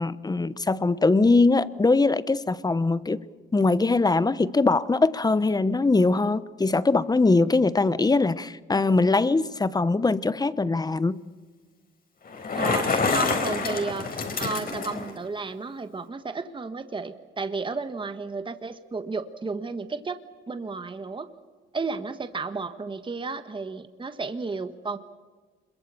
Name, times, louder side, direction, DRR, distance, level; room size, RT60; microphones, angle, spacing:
voice 1, 0.0-3.2 3.5-11.2, left 3 dB, 20° left, 16 dB, 1.0 m, -22 dB
Bicycle, 12.3-15.1, left 4 dB, 50° left, 4.5 m, -27 dB
voice 2, 12.5-21.3 21.7-25.0, right 4 dB, 25° right, 10 dB, 1.5 m, -33 dB
26.5 x 22.5 x 7.1 m, 1.4 s
cardioid pair, 90°, 20 cm